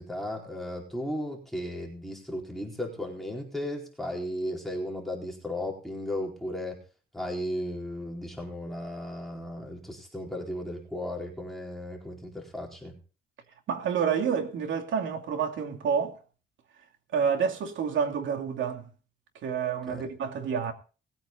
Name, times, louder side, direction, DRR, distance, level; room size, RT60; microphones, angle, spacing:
voice 1, 0.0-6.8 7.1-12.9 19.9-20.0, left 1 dB, ahead, 4.3 m, -35 dB
voice 2, 13.7-16.2 17.1-18.9 19.4-20.7, right 7 dB, 75° right, 2.7 m, -28 dB
20.5 x 9.1 x 3.9 m
cardioid pair, 90°, 20 cm